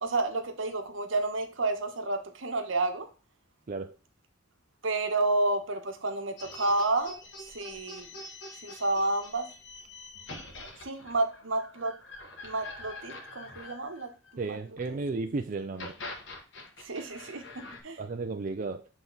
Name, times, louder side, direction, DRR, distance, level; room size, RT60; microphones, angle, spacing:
voice 1, 0.0-3.1 4.8-8.1 8.6-9.5 10.8-11.9 12.4-14.1 14.5-14.6 14.9-15.0 16.8-18.0, right 2 dB, 70° right, 1.1 m, -30 dB
sound 1, 6.4-14.8 15.6-17.8, left 2 dB, 60° left, 1.4 m, -45 dB
voice 2, 14.4-15.9 18.0-18.9, right 3 dB, 40° right, 0.4 m, -34 dB
7.8 x 3.6 x 3.9 m
head